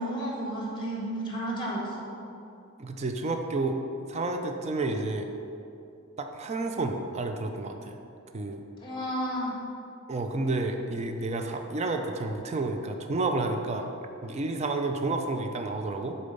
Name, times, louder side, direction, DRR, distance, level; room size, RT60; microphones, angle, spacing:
voice 1, 0.0-2.1 8.8-9.6, right 1 dB, 25° left, -3 dB, 1.5 m, -32 dB
voice 2, 2.8-3.8 4.1-5.3 6.2-8.0 8.3-8.6 10.1-13.9 14.2-16.2, right 2 dB, 30° right, 5 dB, 0.4 m, -30 dB
6.8 x 4.3 x 5.3 m, 2.6 s
head